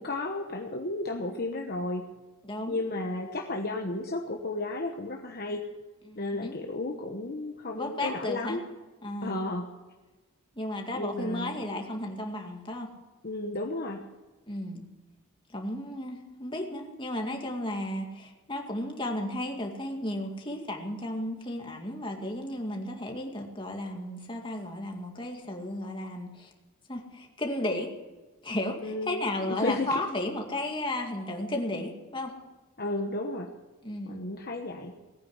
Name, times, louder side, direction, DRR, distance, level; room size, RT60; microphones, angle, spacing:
voice 1, 0.0-2.1 2.7-5.6 6.2-8.6 9.2-9.7 10.9-11.8 13.2-14.0 28.8-30.0 32.8-33.5 34.0-35.0, left 2 dB, 45° left, 2 dB, 1.1 m, -33 dB
voice 2, 2.4-2.8 6.1-6.6 7.7-8.6 9.0-9.4 10.6-12.9 14.5-14.9 15.5-26.5 26.9-27.9 28.4-32.3 33.8-34.2, left 1 dB, 25° left, 2 dB, 2.2 m, -34 dB
18.5 x 9.5 x 8.0 m, 1.2 s
head